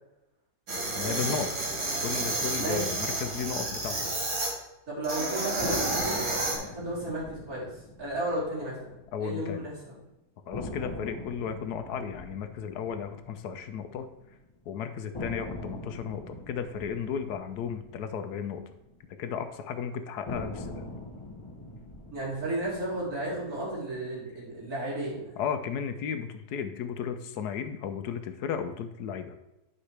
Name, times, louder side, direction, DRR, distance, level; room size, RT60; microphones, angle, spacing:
sound 1, 0.7-4.5 5.0-6.6, right 2 dB, 85° right, 2.5 m, -30 dB
voice 1, 1.0-1.5 2.0-4.0 9.1-9.6 10.5-14.1 14.7-18.6 19.2-20.8 25.4-29.4, left 7 dB, 80° left, 9 dB, 1.3 m, -34 dB
voice 2, 2.5-2.9 4.9-9.9 22.1-25.3, right 1 dB, 65° right, -7 dB, 3.3 m, -34 dB
sound 2, 5.6-9.7 9.9-10.0 10.5-14.6 15.1-19.5 20.2-24.6, left 2 dB, 25° left, 0.8 m, -43 dB
11.0 x 5.4 x 3.3 m, 0.93 s
omnidirectional pair, 1.7 m